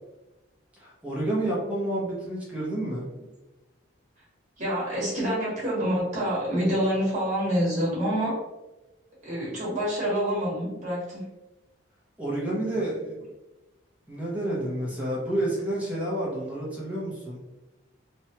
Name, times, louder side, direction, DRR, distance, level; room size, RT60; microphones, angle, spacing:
voice 1, 0.8-3.1 12.2-13.2 14.1-17.4, right 1 dB, 5° right, -6 dB, 0.7 m, -29 dB
voice 2, 4.6-8.3 9.2-11.2, equal, 35° right, -7 dB, 1.3 m, -27 dB
3.1 x 2.2 x 2.8 m, 1.0 s
head